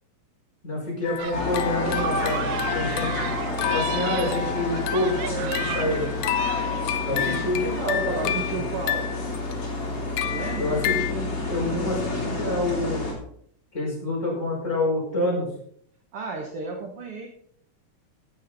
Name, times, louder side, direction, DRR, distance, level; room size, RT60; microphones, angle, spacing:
voice 1, 0.6-3.4 3.7-6.1 7.1-8.6 10.6-13.1 13.7-15.5, left 1 dB, 20° left, -4 dB, 5.7 m, -28 dB
sound 1, 1.0-11.1, left 11 dB, 75° left, 2.1 m, -31 dB
sound 2, 1.2-8.3, right 9 dB, 80° right, 2.1 m, -35 dB
sound 3, 1.3-13.1, left 2 dB, 45° left, 4.2 m, -30 dB
voice 2, 7.0-7.4 8.2-9.1 10.3-10.8 16.1-17.3, right 4 dB, 55° right, 1 dB, 2.2 m, -34 dB
16.5 x 7.5 x 4.2 m, 0.65 s
omnidirectional pair, 3.5 m